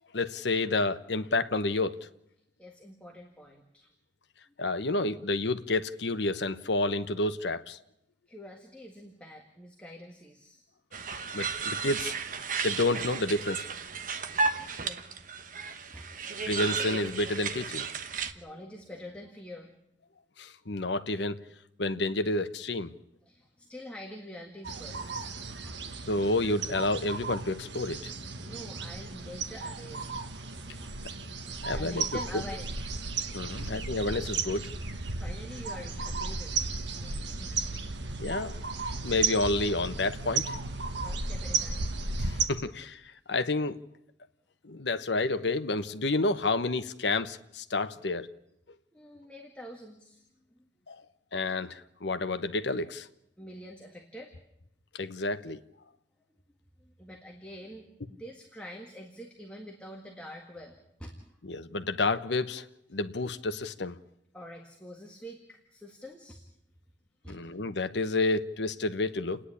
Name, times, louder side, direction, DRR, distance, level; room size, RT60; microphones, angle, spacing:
voice 1, 0.1-1.9 4.6-7.8 11.3-12.2 12.6-13.7 16.4-17.9 20.4-21.4 21.8-22.9 26.1-28.1 31.6-32.0 32.3-32.4 33.3-34.7 38.2-38.6 39.0-40.6 42.2-43.0 43.3-43.8 44.6-48.3 50.9-51.0 51.3-53.1 54.9-55.6 61.5-62.6 62.9-64.0 67.3-69.4, left 2 dB, 75° left, 1.0 m, -29 dB
voice 2, 2.6-3.9 8.3-10.6 14.3-15.1 15.9-16.6 18.2-19.7 23.3-25.7 28.4-30.1 30.8-30.9 31.7-32.8 33.6-33.7 35.1-36.5 36.9-37.7 41.0-41.9 48.9-50.2 50.6-50.7 53.4-54.3 56.8-61.4 64.3-66.4 67.2-67.4, equal, 5° left, 1.8 m, -46 dB
sound 1, 10.9-18.3, right 5 dB, 45° right, 1.1 m, -34 dB
sound 2, 24.6-42.5, right 4 dB, 75° right, 1.5 m, -34 dB
29.5 x 10.0 x 9.9 m
head